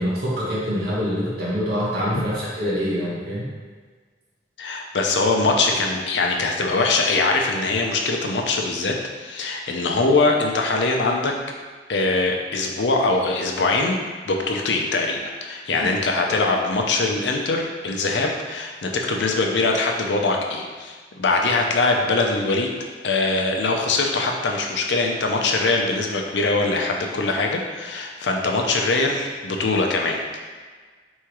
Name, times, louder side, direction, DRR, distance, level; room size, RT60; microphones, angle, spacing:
voice 1, 0.0-3.5, equal, 65° right, -7 dB, 1.5 m, -25 dB
voice 2, 4.6-11.3 11.9-14.0 14.3-22.7 23.0-30.4, left 3 dB, 80° left, 1 dB, 0.6 m, -22 dB
3.6 x 3.1 x 4.6 m, 1.5 s
head